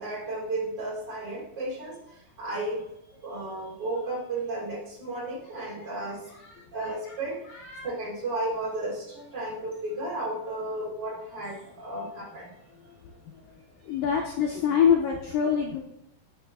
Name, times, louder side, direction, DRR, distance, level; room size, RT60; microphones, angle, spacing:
voice 1, 0.0-2.9 3.2-6.3 6.7-7.4 7.8-12.7 13.9-14.0, right 2 dB, 30° right, -5 dB, 2.6 m, -33 dB
voice 2, 6.4-6.9 7.7-7.9 13.9-15.8, left 7 dB, 80° left, 0 dB, 2.0 m, -25 dB
8.1 x 6.3 x 3.5 m, 0.78 s
omnidirectional pair, 4.8 m